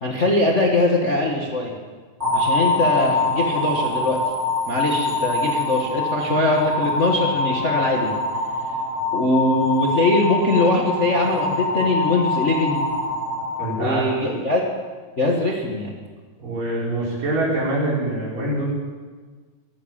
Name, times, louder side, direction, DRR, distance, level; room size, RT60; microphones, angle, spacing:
voice 1, 0.0-1.7 2.3-4.2 4.7-8.1 9.1-12.9 13.8-14.6 15.2-15.9, left 2 dB, 40° left, -1 dB, 1.0 m, -21 dB
sound 1, 2.2-14.4, left 2 dB, 20° right, 5.5 m, -24 dB
voice 2, 13.6-14.0 16.4-18.7, right 1 dB, 85° right, -6 dB, 6.8 m, -24 dB
15.0 x 12.5 x 7.5 m, 1.5 s
omnidirectional pair, 3.8 m